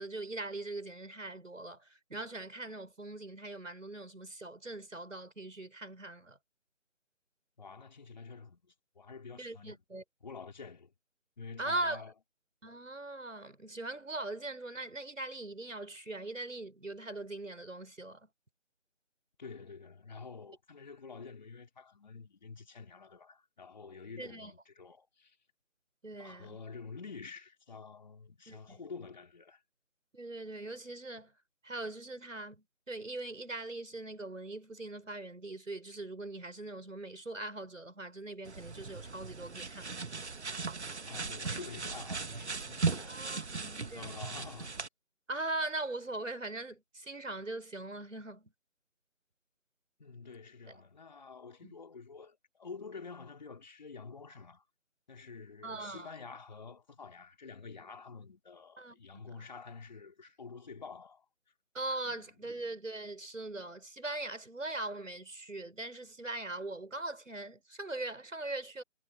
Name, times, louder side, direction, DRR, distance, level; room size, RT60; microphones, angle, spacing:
voice 1, 0.0-6.4 9.4-10.0 11.6-12.0 12.6-18.3 24.2-24.5 26.0-26.6 28.5-28.8 30.1-31.3 31.6-40.0 43.1-44.1 45.3-48.5 50.7-50.8 51.6-51.7 55.6-56.1 58.8-59.0 61.7-68.8, right 2 dB, 80° right, 6.8 m, -41 dB
voice 2, 7.6-9.8 10.2-10.9 11.4-12.1 19.4-25.4 26.2-29.6 41.1-43.3 43.6-44.7 50.0-54.6 55.1-61.3 62.0-62.6, left 5 dB, 35° left, 3.4 m, -48 dB
sound 1, 38.5-44.9, right 4 dB, 60° right, 1.8 m, -38 dB
figure-of-eight pair, 170°, 38 cm